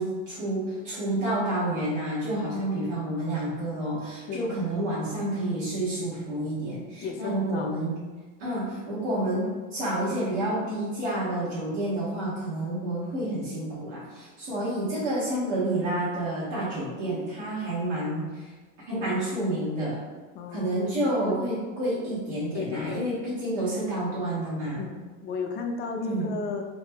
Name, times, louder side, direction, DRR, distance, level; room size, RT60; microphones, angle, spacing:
voice 1, 0.0-8.0 8.4-18.5 18.9-20.0 20.5-24.8 26.0-26.4, right 1 dB, 75° right, -9 dB, 1.1 m, -29 dB
voice 2, 4.3-4.6 6.9-7.7 18.9-19.1 20.4-20.9 21.2-21.3 22.5-23.1 24.8-26.6, left 4 dB, 25° left, 2 dB, 0.4 m, -34 dB
2.9 x 2.1 x 3.4 m, 1.3 s
hypercardioid pair, 105°, 38 cm